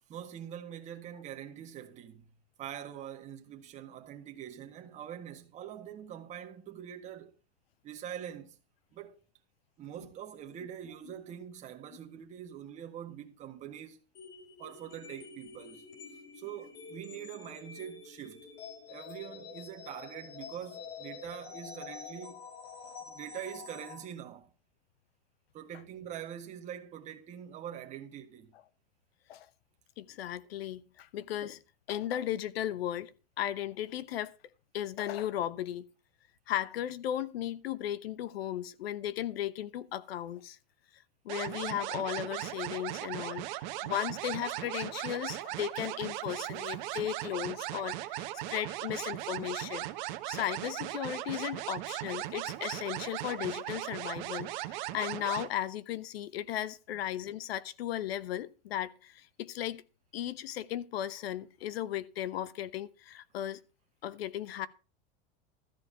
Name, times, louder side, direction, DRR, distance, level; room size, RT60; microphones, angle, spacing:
voice 1, 0.1-2.3 2.6-7.3 7.8-8.6 8.9-9.2 9.8-14.0 14.6-15.9 16.4-18.5 18.9-22.4 23.1-24.5 25.5-28.5, right 10 dB, 25° right, 1.7 m, -44 dB
sound 1, 14.1-24.1, left 5 dB, 45° left, 4.1 m, -48 dB
voice 2, 30.0-31.6 31.9-33.1 33.4-34.3 34.7-35.8 36.5-40.6 41.2-43.4 43.8-49.9 50.3-59.8 60.1-63.6 64.0-64.7, left 11 dB, 85° left, 1.0 m, -36 dB
sound 2, 41.3-55.5, right 15 dB, 50° right, 1.2 m, -38 dB
13.5 x 4.7 x 8.2 m
supercardioid pair, 160°, 29 cm